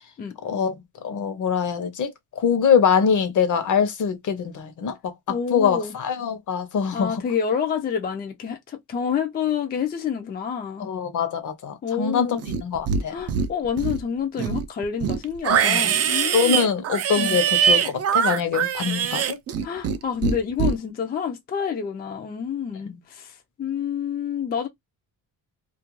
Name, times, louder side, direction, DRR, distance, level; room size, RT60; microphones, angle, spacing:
voice 1, 0.4-0.8 1.0-7.2 10.8-13.1 15.5-15.9 16.3-19.4 22.8-23.0, left 7 dB, 55° left, 0.7 m, -24 dB
voice 2, 5.3-5.9 6.9-10.9 11.8-12.5 13.1-16.7 17.2-17.4 19.6-24.7, left 7 dB, 25° left, 0.4 m, -28 dB
Livestock farm animals working animals, 12.4-13.0 13.3-14.0 14.4-20.0 20.2-20.7, right 7 dB, 45° right, 0.4 m, -22 dB
2.4 x 2.2 x 2.9 m
cardioid pair, 145°, 38 cm